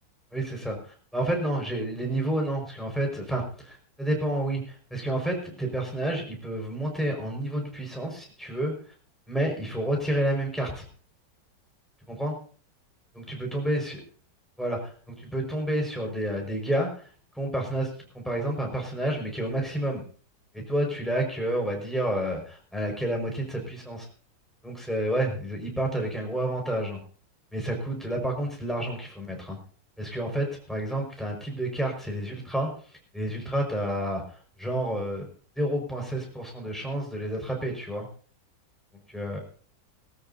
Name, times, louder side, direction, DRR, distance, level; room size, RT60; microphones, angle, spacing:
voice 1, 0.3-8.7 9.3-10.8 12.1-12.4 13.1-14.0 14.6-17.0 17.4-17.9 18.1-20.0 20.5-24.1 24.6-27.0 27.5-29.6 30.0-35.3 35.6-38.0 39.1-39.4, right 1 dB, ahead, 1 dB, 5.4 m, -30 dB
22.0 x 13.5 x 2.8 m, 0.43 s
omnidirectional pair, 1.9 m